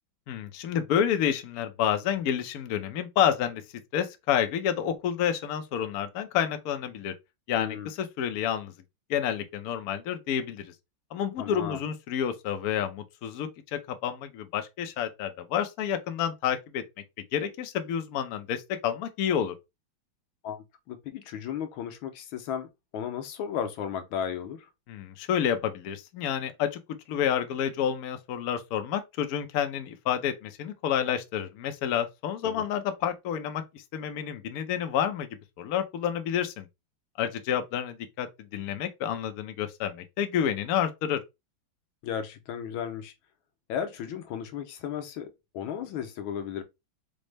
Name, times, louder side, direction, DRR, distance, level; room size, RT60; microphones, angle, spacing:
voice 1, 0.3-3.6 3.9-7.1 7.5-8.7 9.1-10.7 11.1-16.8 17.3-19.5 24.9-26.8 27.1-35.3 35.6-36.7 37.2-41.2, left 9 dB, 65° left, 0.9 m, -29 dB
voice 2, 7.5-7.9 11.4-11.8 20.4-24.7 32.4-32.6 42.0-43.1 43.7-46.6, left 8 dB, 85° left, 1.5 m, -35 dB
5.2 x 2.1 x 3.2 m
omnidirectional pair, 2.2 m